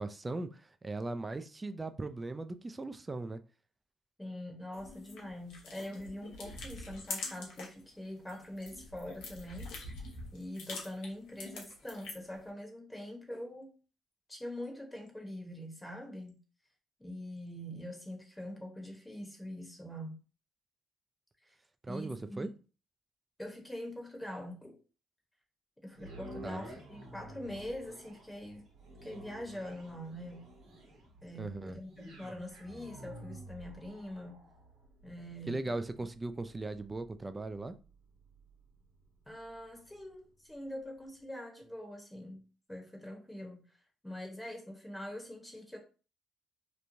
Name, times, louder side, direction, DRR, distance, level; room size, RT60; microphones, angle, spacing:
voice 1, 0.0-3.4 21.8-22.5 26.4-26.6 31.4-31.8 35.5-37.8, right 2 dB, 25° right, 0.3 m, -38 dB
voice 2, 4.2-10.0 10.3-13.7 14.3-16.4 17.0-20.2 21.4-21.6 21.9-22.5 23.4-24.8 25.8-28.6 29.0-30.8 31.2-34.4 35.0-35.6 39.3-42.4 42.7-43.8 44.0-45.8, left 1 dB, 10° left, 0.9 m, -44 dB
sound 1, 4.7-7.8 8.2-12.4, left 3 dB, 80° left, 0.8 m, -45 dB
sound 2, 25.9-40.1 40.7-40.8, right 1 dB, 80° right, 1.1 m, -52 dB
3.0 x 2.2 x 2.6 m
supercardioid pair, 65°, 0 cm